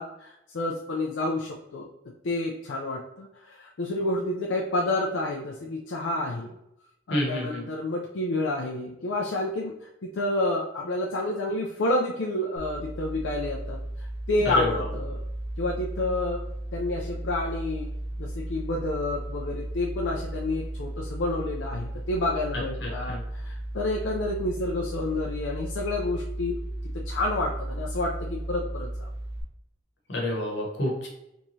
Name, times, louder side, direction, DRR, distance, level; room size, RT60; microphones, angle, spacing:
voice 1, 0.0-1.9 2.2-6.5 7.1-9.8 10.0-15.2 15.6-16.4 16.7-17.9 18.2-26.6 27.1-28.9, left 2 dB, 85° left, -1 dB, 0.4 m, -29 dB
voice 2, 7.1-7.6 14.4-14.9 22.5-23.2 30.1-31.1, left 1 dB, 70° left, -2 dB, 1.1 m, -29 dB
sound 1, 12.6-29.4, right 1 dB, 60° right, 0.6 m, -35 dB
3.5 x 3.0 x 2.7 m, 0.83 s
head